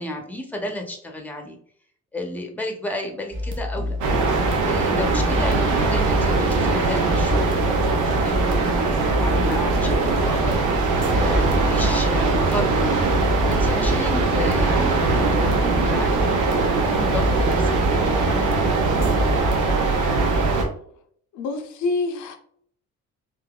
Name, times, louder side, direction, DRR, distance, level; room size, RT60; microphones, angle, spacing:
voice 1, 0.0-1.6 2.1-4.0 4.6-10.8 11.1-13.1 13.5-18.7, left 1 dB, 5° left, 3 dB, 0.7 m, -32 dB
sound 1, 3.3-19.6, left 2 dB, 40° right, 0.6 m, -29 dB
sound 2, 4.0-20.7, right 3 dB, 85° right, 0.8 m, -21 dB
voice 2, 21.3-22.4, left 3 dB, 75° left, 5 dB, 0.7 m, -27 dB
3.9 x 2.5 x 2.3 m, 0.62 s
cardioid pair, 90°, 30 cm